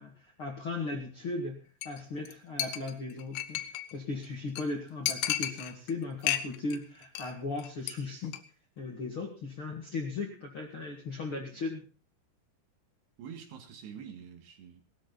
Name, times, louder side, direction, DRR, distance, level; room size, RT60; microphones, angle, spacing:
voice 1, 0.0-1.6 1.8-3.6 3.9-8.4 8.8-11.9, left 3 dB, 45° left, 1 dB, 1.8 m, -37 dB
Chink clink, 1.8-2.0 2.3-2.4 2.6-3.9 4.2-4.3 4.6-4.7 5.1-5.9 6.2-6.8 7.0-7.3 7.6-7.9 8.2-8.4, left 11 dB, 90° left, 3.5 m, -33 dB
voice 2, 13.2-14.8, right 7 dB, 65° right, 5 dB, 3.9 m, -46 dB
19.0 x 13.0 x 4.0 m, 0.36 s
omnidirectional pair, 5.3 m